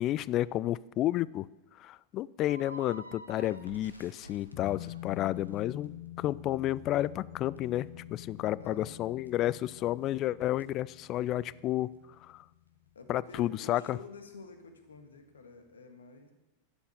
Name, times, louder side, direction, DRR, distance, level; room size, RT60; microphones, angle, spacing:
voice 1, 0.0-1.5 1.8-11.9 12.2-12.4 13.1-14.0, left 14 dB, 35° left, 22 dB, 0.3 m, -31 dB
sound 1, 2.4-5.6, right 1 dB, 85° right, 0.8 m, -50 dB
Crackle, 3.5-11.6 11.9-12.1 12.4-13.1, right 1 dB, 85° left, 1.1 m, -61 dB
sound 2, 4.5-13.6 13.9-14.0, left 14 dB, 55° left, 1.0 m, -47 dB
voice 2, 8.6-8.9 12.9-16.3, left 3 dB, 70° left, 7 dB, 1.7 m, -49 dB
11.5 x 8.0 x 7.7 m, 1.0 s
figure-of-eight pair, 90°, 0 cm